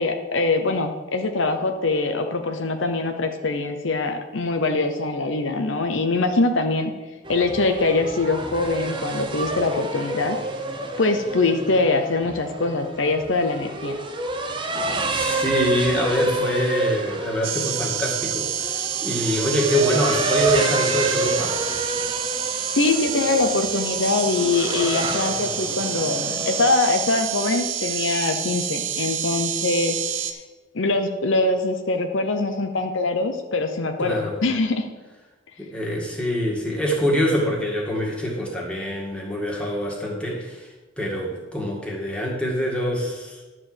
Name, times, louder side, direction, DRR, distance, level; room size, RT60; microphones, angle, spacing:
voice 1, 0.0-6.9 7.3-10.4 11.0-14.0 22.7-30.0 30.7-34.9, left 3 dB, 70° left, 6 dB, 0.8 m, -23 dB
sound 1, 7.2-26.7, right 2 dB, 25° right, 0.8 m, -29 dB
voice 2, 14.6-21.6 34.0-34.4 35.6-43.4, equal, 5° left, -3 dB, 2.0 m, -25 dB
sound 2, 17.4-30.3, right 8 dB, 75° right, 0.9 m, -28 dB
11.5 x 4.6 x 7.8 m, 1.2 s
head